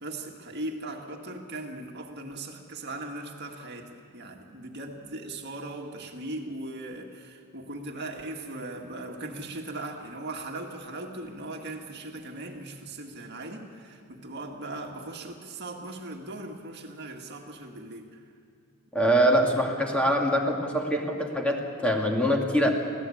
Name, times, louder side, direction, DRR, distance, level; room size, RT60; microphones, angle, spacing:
voice 1, 0.0-18.3, right 2 dB, 50° right, 2 dB, 1.9 m, -39 dB
voice 2, 18.9-22.7, equal, 5° left, 0 dB, 2.5 m, -24 dB
26.0 x 16.5 x 8.6 m, 2.3 s
head